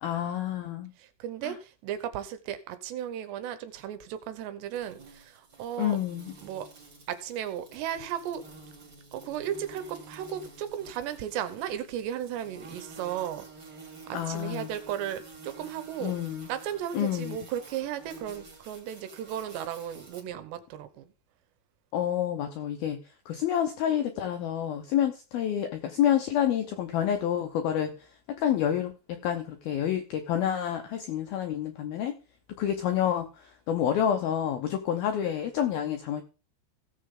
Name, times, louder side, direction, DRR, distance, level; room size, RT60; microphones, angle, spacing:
voice 1, 0.0-0.9 1.4-1.5 5.8-6.3 14.1-14.7 16.0-16.5 16.9-17.4 21.9-23.0 23.3-27.9 28.3-28.9 29.2-32.2 32.6-33.3 33.7-36.2, left 10 dB, 90° left, 6 dB, 2.1 m, -28 dB
voice 2, 1.0-6.0 6.4-6.7 7.1-8.4 9.1-13.8 14.1-16.2 16.5-21.1, right 10 dB, 75° right, 11 dB, 2.9 m, -35 dB
sound 1, 4.7-20.2, right 3 dB, 30° right, 2.7 m, -50 dB
17.0 x 7.6 x 3.8 m, 0.33 s
omnidirectional pair, 5.7 m